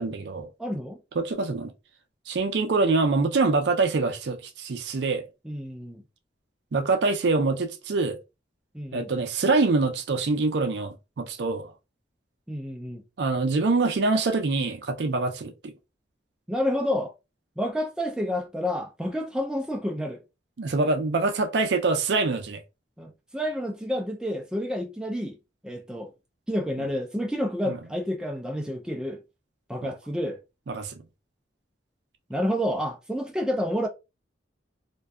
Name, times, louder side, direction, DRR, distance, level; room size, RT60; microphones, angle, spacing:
voice 1, 0.0-0.5 1.2-1.7 2.3-5.3 6.7-8.2 8.9-11.7 13.2-15.7 20.6-22.6 27.7-27.8 29.8-29.9 30.7-31.0, right 3 dB, 65° right, 0.4 m, -25 dB
voice 2, 0.6-1.0 5.5-6.0 8.7-9.1 12.5-13.0 16.5-17.1 17.6-20.2 23.0-25.4 25.6-26.1 26.5-29.2 29.7-30.4 32.3-33.9, equal, 5° right, 0.3 m, -29 dB
2.5 x 2.3 x 2.3 m
head